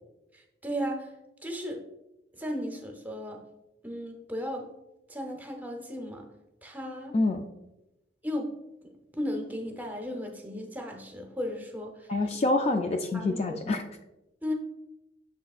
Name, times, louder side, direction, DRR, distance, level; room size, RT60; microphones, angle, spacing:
voice 1, 0.3-1.1 1.4-1.8 2.3-3.4 3.8-4.7 5.1-6.3 6.6-7.2 8.2-8.5 8.8-12.1 13.1-13.6 14.4-14.5, equal, 10° right, 3 dB, 0.7 m, -35 dB
voice 2, 7.1-7.4 12.1-13.8, left 2 dB, 35° left, 6 dB, 0.3 m, -26 dB
6.7 x 6.2 x 2.4 m, 0.97 s
head